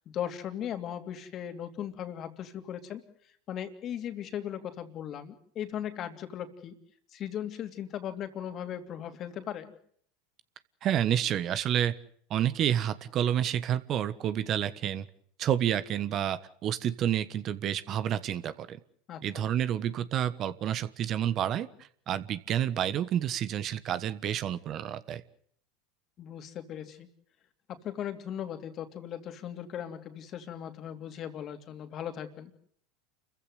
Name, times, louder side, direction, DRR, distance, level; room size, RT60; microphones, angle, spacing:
voice 1, 0.1-3.0 3.5-6.7 7.1-9.7 19.1-19.4 26.2-27.1 27.7-32.5, left 10 dB, 45° left, 8 dB, 3.0 m, -38 dB
voice 2, 10.8-11.9 12.3-15.1 15.4-18.8 19.2-21.7 22.1-25.2, right 10 dB, 45° right, 14 dB, 1.4 m, -29 dB
29.0 x 15.0 x 8.0 m, 0.62 s
hypercardioid pair, 85°, 0 cm